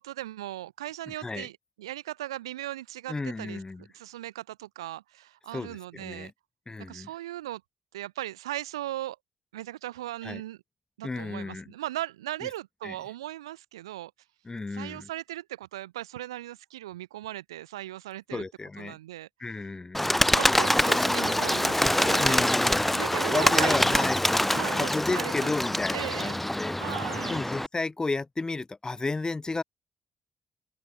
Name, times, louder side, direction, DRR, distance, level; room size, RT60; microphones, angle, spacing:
voice 1, 0.0-1.5 1.8-3.6 3.9-6.3 6.9-7.6 7.9-9.2 9.5-10.6 11.0-14.1 14.7-18.4 18.8-19.3 20.3-22.5 22.9-24.1 24.5-25.5 25.9-26.4 26.8-27.5, right 14 dB, 90° right, 7.5 m, -37 dB
voice 2, 1.1-1.5 3.1-3.9 5.5-6.3 6.7-7.1 10.2-10.4 11.0-11.7 12.8-13.0 14.4-15.1 18.3-19.0 19.4-20.1 21.8-24.4 24.7-29.6, left 3 dB, 25° left, 7.3 m, -33 dB
Bird, 19.9-27.7, left 1 dB, 5° left, 0.9 m, -25 dB
open air
hypercardioid pair, 45°, 3 cm